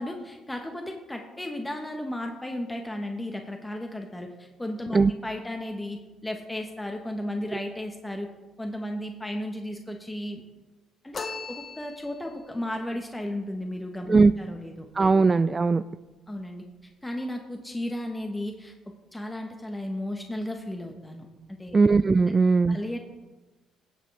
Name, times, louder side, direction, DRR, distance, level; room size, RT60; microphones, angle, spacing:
voice 1, 0.0-8.3 8.6-10.4 11.0-11.2 11.5-14.9 16.3-16.6 17.0-18.7 19.1-21.3 21.6-21.8 22.7-23.0, left 1 dB, 10° left, 3 dB, 1.4 m, -34 dB
sound 1, 11.1-12.4, left 4 dB, 40° left, 1.4 m, -37 dB
voice 2, 14.9-15.8 21.7-22.8, right 4 dB, 30° right, 13 dB, 0.4 m, -19 dB
17.5 x 7.4 x 3.5 m, 1.2 s
hypercardioid pair, 55°, 0 cm